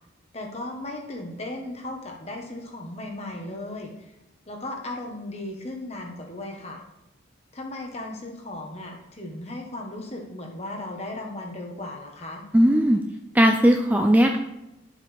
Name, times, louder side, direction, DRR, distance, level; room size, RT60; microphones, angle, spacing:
voice 1, 0.3-4.1 4.5-6.8 7.5-12.4, left 1 dB, 30° left, 1 dB, 1.3 m, -36 dB
voice 2, 12.5-13.0 13.3-14.4, equal, 10° right, 3 dB, 0.4 m, -18 dB
11.0 x 7.6 x 3.5 m, 0.93 s
head